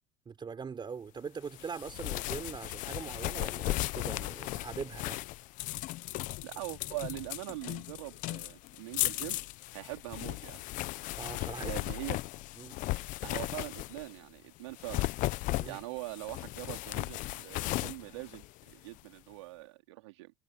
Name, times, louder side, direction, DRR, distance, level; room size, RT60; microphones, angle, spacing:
voice 1, 0.3-5.2 11.2-11.7 12.6-12.8 15.5-15.8, right 6 dB, 35° right, 3.6 m, -42 dB
sound 1, 1.5-14.2 14.7-19.0, left 19 dB, 65° left, 0.9 m, -36 dB
voice 2, 6.4-9.4 9.7-10.6 11.6-12.2 13.2-15.1 15.6-20.3, right 21 dB, 85° right, 3.3 m, -42 dB
hypercardioid pair, 75°, 14 cm